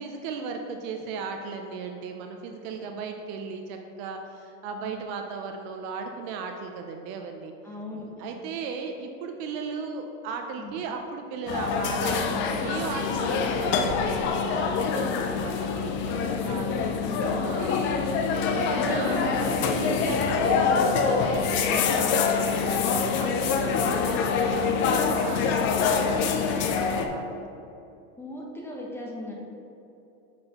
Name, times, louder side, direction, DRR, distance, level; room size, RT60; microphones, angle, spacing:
voice 1, 0.0-7.5 8.0-17.9 18.5-27.5, right 5 dB, 45° right, 4 dB, 0.6 m, -36 dB
voice 2, 7.6-8.4 10.6-10.8 16.1-16.7 17.0-17.3 18.7-19.2 28.2-29.3, left 1 dB, 5° left, -3 dB, 0.8 m, -39 dB
sound 1, 11.5-27.1, left 5 dB, 30° left, 0.4 m, -25 dB
sound 2, 19.7-20.3 20.7-21.4 21.8-22.4 22.7-24.0 25.1-25.6, left 6 dB, 60° left, 1.2 m, -46 dB
7.4 x 5.8 x 2.9 m, 2.9 s
supercardioid pair, 135°, 43 cm